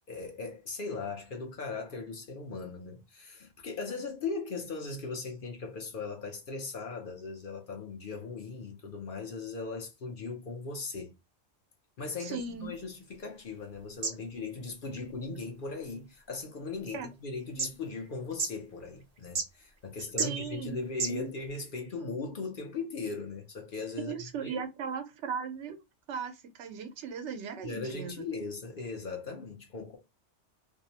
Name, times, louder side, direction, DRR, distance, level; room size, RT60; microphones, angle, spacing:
voice 1, 0.1-11.1 12.0-24.1 24.4-24.6 27.6-30.0, left 4 dB, 55° left, 0.7 m, -38 dB
voice 2, 12.2-12.7 16.9-17.1 20.2-20.8 21.1-21.3 24.0-25.8 26.1-28.3, right 6 dB, 75° right, 0.9 m, -37 dB
sound 1, 12.3-21.6, right 4 dB, 45° right, 0.5 m, -41 dB
2.6 x 2.0 x 2.7 m
omnidirectional pair, 1.2 m